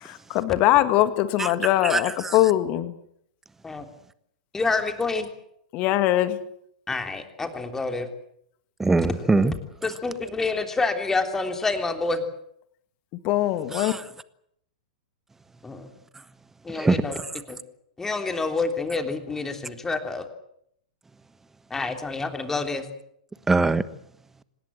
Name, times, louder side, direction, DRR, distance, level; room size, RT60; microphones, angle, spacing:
voice 1, 0.0-2.9 5.7-6.4 13.2-13.9, left 14 dB, 35° left, 1.9 m, -22 dB
voice 2, 1.8-2.4 8.8-9.6 13.7-14.1 16.1-16.2 16.7-17.3 23.5-23.8, right 3 dB, 10° right, 1.3 m, -23 dB
voice 3, 4.5-5.3 6.9-8.1 9.8-12.2 15.6-15.9 16.6-17.1 17.5-17.6 18.0-20.2 21.7-22.8, left 3 dB, 10° left, 3.3 m, -27 dB
26.0 x 19.5 x 7.8 m
figure-of-eight pair, 100°, 4 cm